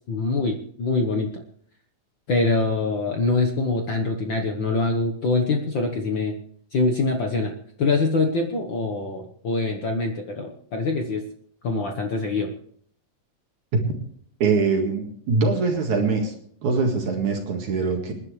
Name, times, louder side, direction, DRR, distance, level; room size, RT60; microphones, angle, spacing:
voice 1, 0.1-1.4 2.3-6.3 6.7-7.5 7.8-11.2 11.6-12.5, left 3 dB, 80° left, 3 dB, 1.0 m, -24 dB
voice 2, 14.4-16.3 16.6-18.1, right 4 dB, 60° right, 2 dB, 3.1 m, -23 dB
27.5 x 10.5 x 3.2 m, 0.63 s
omnidirectional pair, 4.1 m